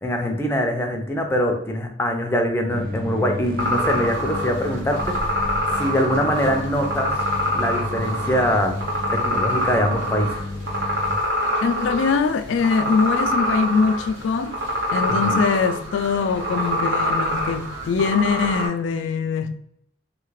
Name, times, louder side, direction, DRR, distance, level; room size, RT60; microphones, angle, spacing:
voice 1, 0.0-7.2 7.5-8.8 9.1-10.4 15.2-15.3, equal, 15° left, 0.4 m, -23 dB
sound 1, 2.7-11.1, left 2 dB, 45° right, 0.5 m, -32 dB
sound 2, 3.6-18.7, equal, 75° right, 1.1 m, -25 dB
voice 2, 11.6-14.5 14.9-19.6, left 5 dB, 80° left, 0.3 m, -22 dB
2.7 x 2.4 x 3.1 m
head